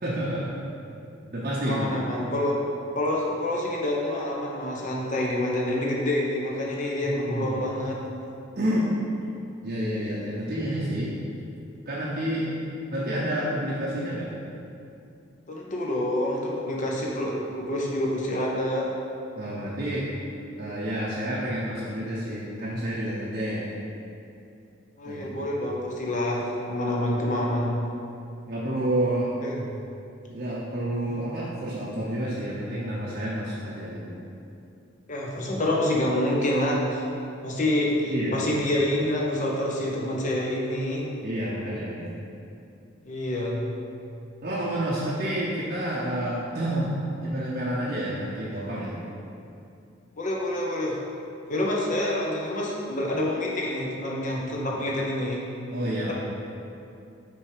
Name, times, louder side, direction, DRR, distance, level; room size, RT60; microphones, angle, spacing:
voice 1, 0.0-0.5 1.3-1.9 7.1-7.6 8.6-8.9 9.6-11.1 11.9-12.5 12.9-14.3 19.3-20.1 20.6-23.7 25.0-25.4 28.5-29.4 30.3-34.2 38.1-38.4 41.2-42.1 44.4-47.0 47.2-49.0 55.7-56.1, right 1 dB, 45° right, -7 dB, 0.7 m, -29 dB
voice 2, 1.7-2.6 2.9-8.0 15.5-18.9 25.0-27.7 29.4-29.6 35.1-37.0 37.4-41.1 43.0-43.6 50.2-51.0 51.5-55.4, left 1 dB, 40° left, -2 dB, 0.8 m, -27 dB
5.8 x 3.5 x 4.9 m, 2.6 s
head